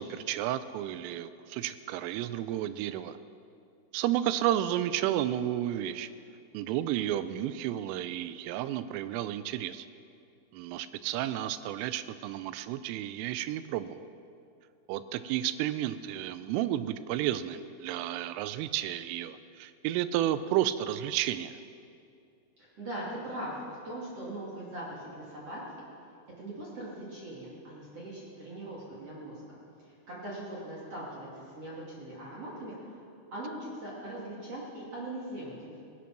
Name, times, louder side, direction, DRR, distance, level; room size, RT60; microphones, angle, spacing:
voice 1, 0.0-3.2 3.9-6.1 6.5-9.9 10.5-14.1 14.9-21.6, right 12 dB, 85° right, 13 dB, 3.1 m, -32 dB
voice 2, 22.6-25.8 26.4-29.6 29.8-33.0 33.3-35.8, right 1 dB, 40° right, -6 dB, 2.4 m, -41 dB
17.5 x 11.5 x 6.0 m, 2.5 s
omnidirectional pair, 5.8 m